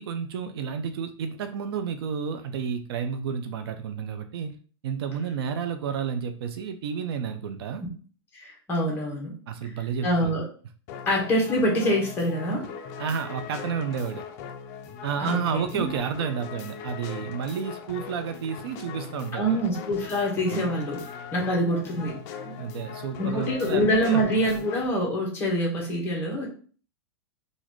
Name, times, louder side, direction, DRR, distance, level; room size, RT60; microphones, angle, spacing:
voice 1, 0.0-4.5 4.8-7.8 9.5-10.3 13.0-14.2 15.0-19.6 20.5-20.7 22.6-24.2, right 7 dB, 65° right, 8 dB, 0.5 m, -31 dB
voice 2, 8.3-9.3 10.0-10.4 11.1-12.7 15.2-15.9 19.3-21.0 21.3-22.7 23.2-26.5, equal, 15° left, -2 dB, 1.2 m, -25 dB
sound 1, 10.9-24.9, left 7 dB, 40° left, 0.4 m, -40 dB
4.0 x 2.5 x 3.0 m, 0.41 s
supercardioid pair, 155°, 14 cm